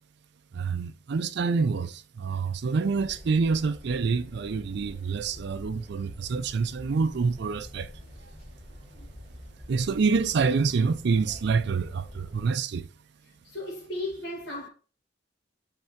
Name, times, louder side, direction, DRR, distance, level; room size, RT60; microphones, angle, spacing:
voice 1, 0.5-7.9 9.7-12.9, right 5 dB, 65° right, 0.4 m, -27 dB
sound 1, 2.8-12.5, equal, 35° left, 3.0 m, -46 dB
voice 2, 13.4-14.7, left 1 dB, 65° left, 2.2 m, -35 dB
5.6 x 3.7 x 4.5 m
head